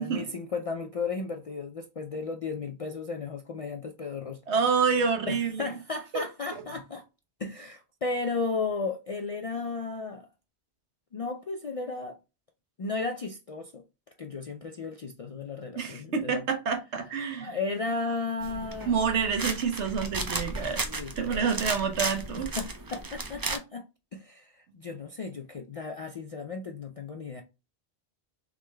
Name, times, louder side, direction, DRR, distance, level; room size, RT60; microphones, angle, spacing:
voice 1, 0.0-4.4 5.3-7.0 7.4-10.3 11.1-12.2 12.8-13.8 14.2-16.4 17.4-18.9 20.8-21.5 22.6-23.8 24.1-27.4, left 4 dB, 60° left, 0.3 m, -34 dB
voice 2, 4.5-5.6 6.1-6.2 15.8-17.5 18.8-20.8 21.2-22.5, right 6 dB, 90° right, 1.2 m, -28 dB
sound 1, 18.4-23.6, right 3 dB, 35° right, 0.3 m, -34 dB
3.7 x 3.3 x 3.1 m
omnidirectional pair, 1.1 m